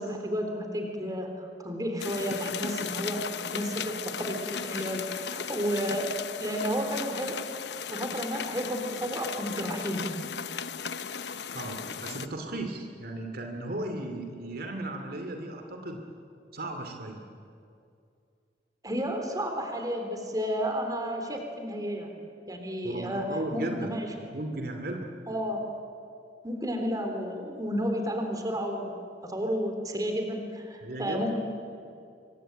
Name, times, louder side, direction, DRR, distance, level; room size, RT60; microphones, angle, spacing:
voice 1, 0.0-3.2 3.5-6.1 6.4-7.4 7.9-10.1 18.8-22.1 22.5-23.2 23.5-24.3 25.3-25.6 26.4-31.4, equal, 20° right, 4 dB, 3.9 m, -32 dB
sound 1, 2.0-12.3, left 7 dB, 70° left, 0.9 m, -36 dB
voice 2, 11.5-16.0 16.5-17.2 22.8-23.9 24.3-25.1 30.8-31.3, right 1 dB, 55° right, 4 dB, 2.7 m, -35 dB
26.0 x 24.0 x 9.1 m, 2.4 s
head